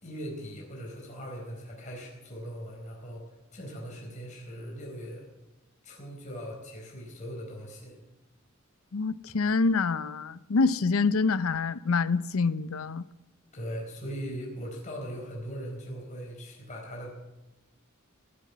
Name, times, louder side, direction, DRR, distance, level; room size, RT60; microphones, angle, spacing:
voice 1, 0.0-3.2 3.5-5.3 5.8-8.0 13.5-17.1, equal, 35° left, 4.5 m, -40 dB
voice 2, 8.9-13.0, left 4 dB, 90° left, 0.6 m, -26 dB
19.5 x 7.7 x 9.4 m
head